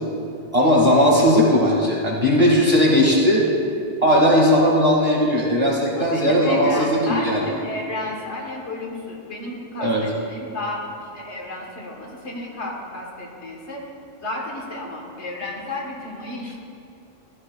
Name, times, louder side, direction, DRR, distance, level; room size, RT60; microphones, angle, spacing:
voice 1, 0.5-3.5 4.0-7.4 9.8-10.0, equal, 35° right, -5 dB, 2.2 m, -17 dB
voice 2, 6.0-13.9 14.2-16.6, left 2 dB, 75° left, -2 dB, 1.7 m, -32 dB
14.5 x 12.0 x 2.4 m, 2.6 s
omnidirectional pair, 1.2 m